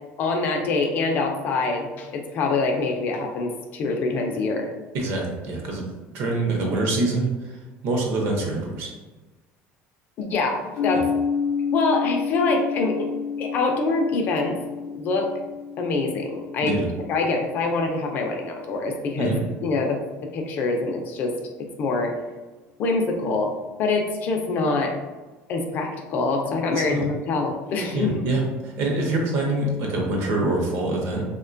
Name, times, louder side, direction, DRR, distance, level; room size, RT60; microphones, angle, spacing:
voice 1, 0.2-4.7 10.2-11.1 11.7-13.1 13.4-14.6 14.8-15.3 15.8-16.8 17.1-19.4 19.6-20.0 20.3-22.1 22.8-23.5 23.8-24.9 25.5-28.2, left 3 dB, 40° left, 2 dB, 0.3 m, -25 dB
voice 2, 4.9-5.9 6.1-7.3 7.8-8.9 10.9-11.0 16.6-16.9 19.2-19.4 26.7-27.0 27.9-31.2, right 2 dB, 55° right, 0 dB, 0.6 m, -25 dB
sound 1, 10.8-18.6, left 6 dB, 85° left, 0.5 m, -30 dB
2.9 x 2.1 x 2.5 m, 1.2 s
cardioid pair, 175°, 5 cm